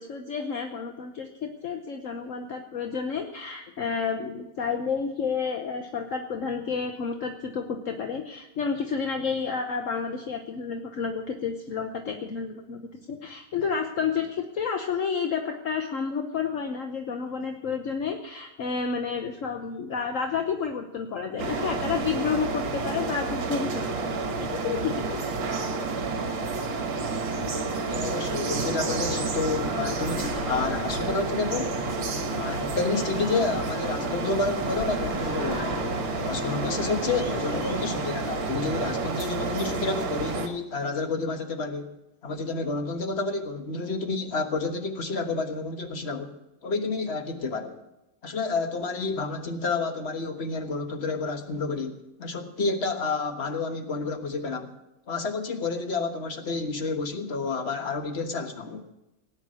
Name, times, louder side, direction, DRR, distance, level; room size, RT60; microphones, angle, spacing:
voice 1, 0.0-12.8 13.1-23.9 24.3-25.4, left 6 dB, 50° left, 4 dB, 1.0 m, -30 dB
sound 1, 21.4-40.5, right 3 dB, 65° right, 2.2 m, -30 dB
voice 2, 27.9-31.7 32.4-35.9 36.2-41.9 42.2-46.4 46.6-47.8 48.2-54.7 55.1-58.8, left 3 dB, 35° left, 6 dB, 1.4 m, -30 dB
sound 2, 28.5-38.0, left 3 dB, 65° left, 2.7 m, -38 dB
18.0 x 9.4 x 6.3 m, 0.92 s
omnidirectional pair, 2.3 m